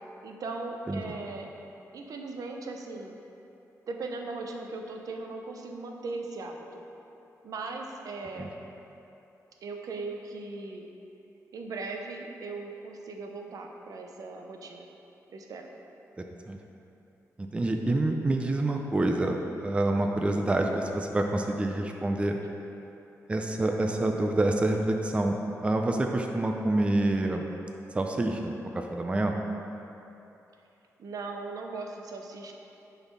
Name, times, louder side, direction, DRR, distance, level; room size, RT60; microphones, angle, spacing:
voice 1, 0.2-1.5 1.9-3.2 3.9-6.8 7.4-8.5 9.6-10.9 11.5-14.9 15.3-15.7 31.0-32.5, right 3 dB, 75° right, 2 dB, 0.8 m, -38 dB
voice 2, 17.4-22.4 23.3-27.5 27.9-29.4, right 2 dB, 20° right, 3 dB, 0.5 m, -27 dB
10.0 x 4.2 x 5.4 m, 2.9 s
wide cardioid pair, 135°, 6 cm